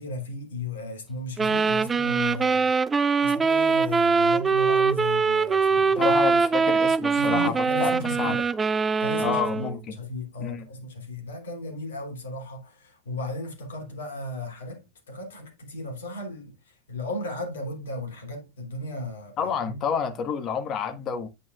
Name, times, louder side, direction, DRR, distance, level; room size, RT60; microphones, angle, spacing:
voice 1, 0.0-2.7 3.2-6.2 7.2-8.4 9.0-9.7 10.0-19.8, left 1 dB, 60° left, 3.2 m, -35 dB
sound 1, 1.4-9.8, right 4 dB, 15° right, 0.3 m, -23 dB
voice 2, 6.0-8.4 9.2-10.0 10.4-10.7 19.4-21.3, left 7 dB, 30° left, 1.7 m, -29 dB
9.4 x 8.7 x 2.5 m
figure-of-eight pair, 90°, 0 cm